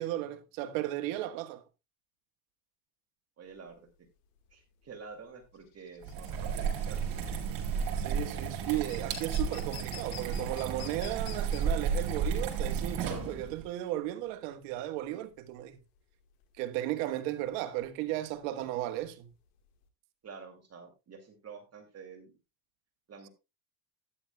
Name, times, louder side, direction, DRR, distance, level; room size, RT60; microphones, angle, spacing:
voice 1, 0.0-1.6 7.9-15.8 16.6-19.3, right 14 dB, 75° right, 1.4 m, -35 dB
voice 2, 3.4-3.9 4.5-7.2 20.2-22.3 23.1-23.3, right 5 dB, 35° right, 2.5 m, -49 dB
sound 1, 3.5-19.9, left 10 dB, 80° left, 1.7 m, -51 dB
sound 2, 6.0-13.6, right 6 dB, 55° right, 4.4 m, -33 dB
13.0 x 9.9 x 2.2 m
supercardioid pair, 95°, 45 cm